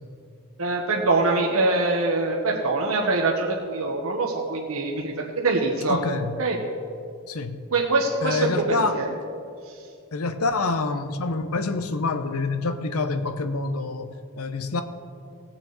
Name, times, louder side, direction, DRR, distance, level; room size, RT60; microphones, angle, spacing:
voice 1, 0.6-6.0 6.4-6.6 7.7-9.1, right 3 dB, 80° right, -1 dB, 1.2 m, -24 dB
voice 2, 5.9-6.4 7.3-7.6 8.2-9.0 10.1-14.8, left 3 dB, 90° left, 9 dB, 0.7 m, -27 dB
18.5 x 7.2 x 4.0 m, 2.4 s
head